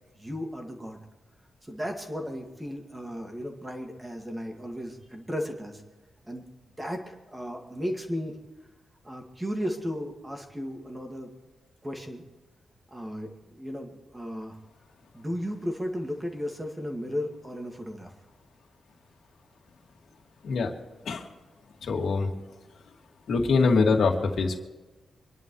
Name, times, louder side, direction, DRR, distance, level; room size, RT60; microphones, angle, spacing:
voice 1, 0.2-1.0 1.6-5.8 6.2-6.4 6.8-8.4 9.0-11.3 11.8-12.2 12.9-14.6 15.1-18.1, equal, 10° right, 2 dB, 2.1 m, -35 dB
voice 2, 21.8-22.3 23.3-24.6, left 4 dB, 65° left, 1 dB, 2.3 m, -24 dB
26.0 x 11.0 x 3.2 m, 1.2 s
wide cardioid pair, 165°, 0 cm